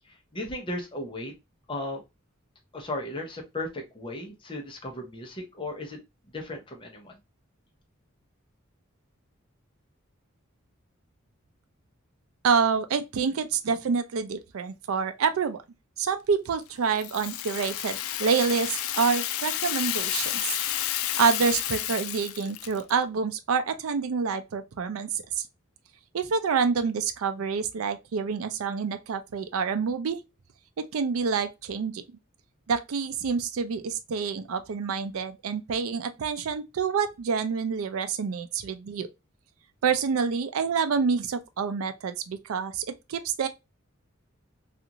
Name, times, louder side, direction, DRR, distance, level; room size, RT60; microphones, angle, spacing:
voice 1, 0.1-1.3 1.7-2.0 2.7-6.0 6.3-7.2, left 1 dB, 25° left, 0.7 m, -36 dB
voice 2, 12.4-15.6 16.0-20.6 21.2-25.1 26.1-30.2 30.8-32.0 32.7-39.1 39.8-43.5, right 5 dB, 85° right, 0.4 m, -27 dB
Rattle (instrument), 17.0-22.9, left 12 dB, 85° left, 0.3 m, -31 dB
2.5 x 2.4 x 2.8 m
head